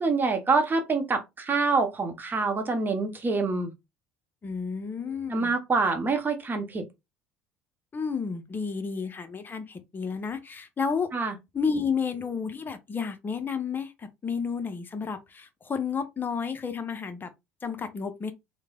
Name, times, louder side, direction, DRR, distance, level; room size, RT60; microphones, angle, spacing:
voice 1, 0.0-3.7 5.3-6.8 11.1-11.3, right 4 dB, 25° right, 0.8 m, -26 dB
voice 2, 4.4-5.6 7.9-11.1 11.5-17.3 17.6-18.3, left 5 dB, 25° left, 0.6 m, -31 dB
3.1 x 2.1 x 2.3 m
hypercardioid pair, 65°, 7 cm